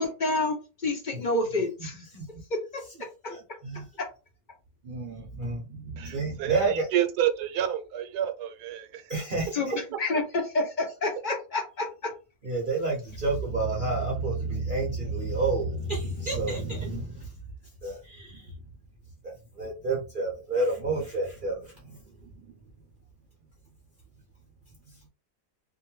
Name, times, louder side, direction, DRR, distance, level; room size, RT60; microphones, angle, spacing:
voice 1, 0.0-2.1 2.7-2.8 9.5-10.2 10.5-12.1, left 2 dB, 65° left, 0.4 m, -28 dB
voice 2, 3.3-3.9 4.8-6.9 9.1-9.7 12.4-17.4 17.8-18.5 19.2-22.6, right 3 dB, 50° right, 0.6 m, -30 dB
voice 3, 6.0-9.1, right 10 dB, 80° right, 1.1 m, -28 dB
2.6 x 2.2 x 3.0 m
omnidirectional pair, 1.7 m